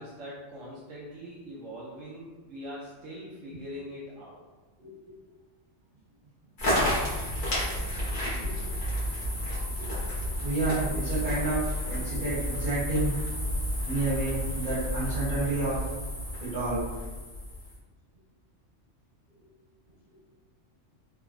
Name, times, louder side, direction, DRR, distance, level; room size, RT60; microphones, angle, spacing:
voice 1, 0.0-4.4, equal, 80° right, -7 dB, 1.0 m, -42 dB
voice 2, 4.8-5.1 7.8-8.0 8.4-8.7 9.8-10.1 10.4-13.2 13.9-15.9 16.4-16.9, right 2 dB, 40° right, -9 dB, 1.2 m, -30 dB
sound 1, 6.6-17.8, equal, 45° left, 0.8 m, -31 dB
3.3 x 2.0 x 2.3 m, 1.2 s
omnidirectional pair, 1.3 m